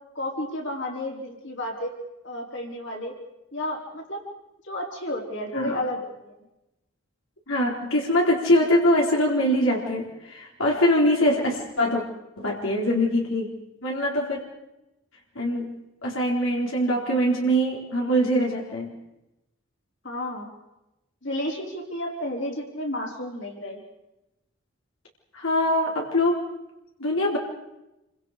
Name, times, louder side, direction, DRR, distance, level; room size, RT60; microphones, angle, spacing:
voice 1, 0.1-1.9 2.2-3.1 3.5-4.2 4.6-6.4 20.0-20.5 21.2-23.8, left 1 dB, 60° left, 0 dB, 4.7 m, -32 dB
voice 2, 7.5-12.0 12.4-13.5 13.8-14.4 15.4-18.9 25.3-26.4 27.0-27.4, equal, 85° left, -2 dB, 4.1 m, -23 dB
28.0 x 25.0 x 5.1 m, 0.94 s
head